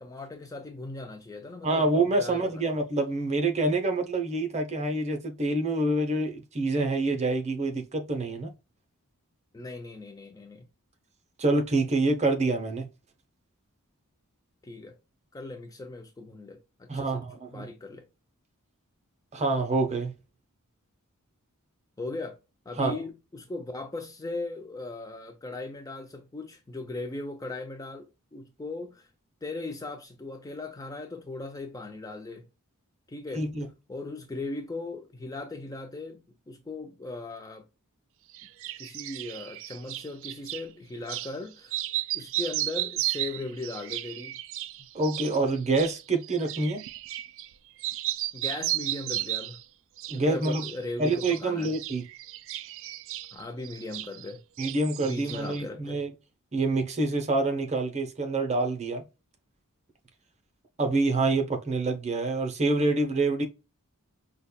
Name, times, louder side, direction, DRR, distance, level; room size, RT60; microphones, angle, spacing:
voice 1, 0.0-1.9 2.2-2.6 9.5-10.6 14.6-15.0 15.3-17.2 17.5-18.0 22.0-22.4 22.7-29.1 29.4-32.4 33.1-33.4 33.9-37.7 38.8-41.8 42.1-44.4 48.3-49.6 50.1-51.7 53.3-54.4 55.0-56.0, left 2 dB, 15° left, 0.3 m, -38 dB
voice 2, 1.6-8.5 11.4-12.9 16.9-17.7 19.3-20.1 22.8-23.0 33.3-33.7 44.9-46.8 50.1-50.7 51.0-52.1 54.6-56.1 56.5-59.0 60.8-63.5, right 2 dB, 30° right, 0.8 m, -26 dB
sound 1, 38.3-40.6 41.1-41.3 41.6-47.5 47.8-49.6 50.0-50.8 51.1-54.3 54.6-55.6, right 15 dB, 60° right, 0.3 m, -34 dB
5.2 x 2.3 x 2.2 m
head